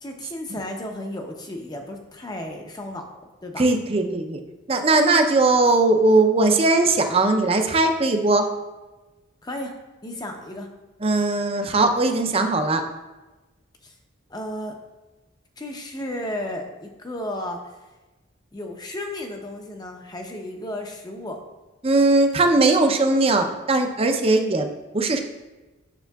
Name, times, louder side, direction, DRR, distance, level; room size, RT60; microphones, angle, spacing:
voice 1, 0.0-3.1 3.4-3.6 9.4-9.7 10.0-10.7 13.8-13.9 14.3-14.8 15.6-17.6 18.5-21.4, left 1 dB, 20° left, 3 dB, 0.6 m, -33 dB
voice 2, 3.6-4.4 4.7-8.4 11.0-12.8 21.8-24.7 24.9-25.2, right 2 dB, 30° right, 6 dB, 0.5 m, -19 dB
8.1 x 6.7 x 2.3 m, 1.1 s
head